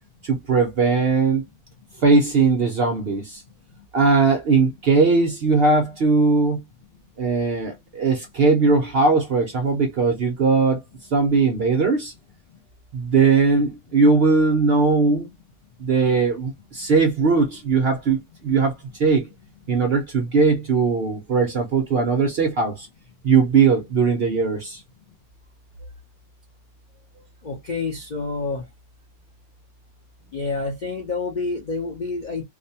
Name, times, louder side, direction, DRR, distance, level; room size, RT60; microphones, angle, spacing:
voice 1, 0.2-1.4 2.0-3.4 3.9-6.6 7.2-10.8 11.1-12.1 12.9-15.3 15.8-18.7 19.0-19.3 19.7-22.9 23.2-24.8, right 4 dB, 55° right, 0.7 m, -19 dB
voice 2, 27.4-28.6 30.3-32.4, left 3 dB, 55° left, 0.5 m, -28 dB
2.6 x 2.2 x 2.7 m
omnidirectional pair, 1.6 m